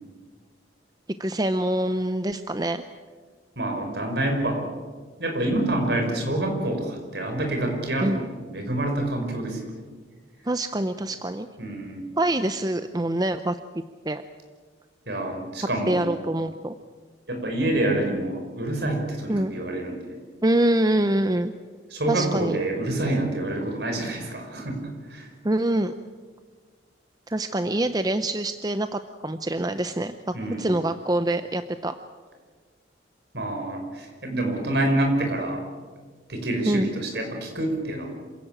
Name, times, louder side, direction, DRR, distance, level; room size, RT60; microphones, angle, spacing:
voice 1, 1.2-2.8 8.0-8.2 10.5-11.5 12.2-13.6 14.1-14.2 15.9-16.7 19.3-19.5 20.4-21.5 22.1-22.6 25.4-25.9 27.3-31.9 36.6-36.9, right 1 dB, 20° right, 10 dB, 0.6 m, -25 dB
voice 2, 3.6-4.7 5.2-9.8 11.6-12.1 15.1-16.1 17.3-20.1 21.9-25.3 30.3-30.7 33.3-35.6 36.3-38.1, right 1 dB, 60° right, 3 dB, 5.2 m, -27 dB
27.0 x 16.5 x 8.9 m, 1.5 s
head